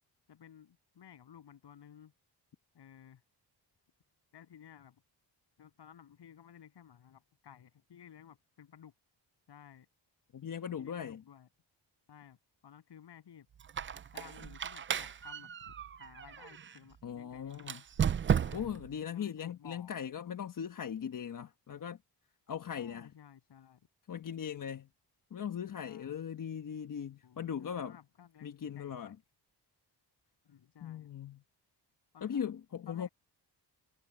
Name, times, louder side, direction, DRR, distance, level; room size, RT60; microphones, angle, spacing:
voice 1, 0.3-2.1 2.7-3.2 4.3-5.0 5.6-8.9 9.5-9.9 10.8-11.5 12.1-12.4 12.6-13.5 14.1-17.8 18.3-18.7 19.1-19.9 22.8-23.9 25.8-26.2 27.2-29.2 30.4-31.1 32.1-32.4 32.9-33.1, left 9 dB, 75° left, 7.8 m, -56 dB
voice 2, 10.3-11.2 17.0-17.8 18.5-22.0 22.5-23.1 24.1-24.9 25.3-28.0 28.4-29.2 30.8-31.4 32.2-33.1, left 8 dB, 50° left, 1.2 m, -39 dB
Squeak, 13.6-16.8 17.6-18.9, right 8 dB, 30° right, 0.4 m, -34 dB
wide cardioid pair, 125°, 41 cm